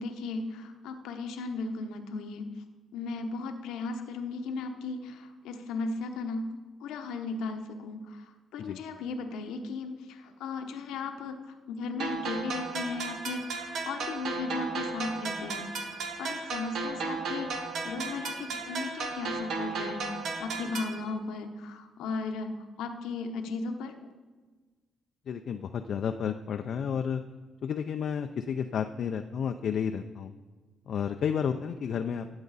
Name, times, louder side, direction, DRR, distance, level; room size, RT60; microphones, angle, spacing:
voice 1, 0.0-2.5 2.9-6.5 6.8-20.0 20.4-24.1, left 3 dB, 90° left, 6 dB, 0.9 m, -36 dB
sound 1, 12.0-21.0, right 4 dB, 70° right, 1.2 m, -35 dB
voice 2, 25.3-27.2 27.6-30.3 30.9-32.3, left 7 dB, 60° left, 6 dB, 0.4 m, -31 dB
13.5 x 8.0 x 4.1 m, 1.4 s
cardioid pair, 90°, 0 cm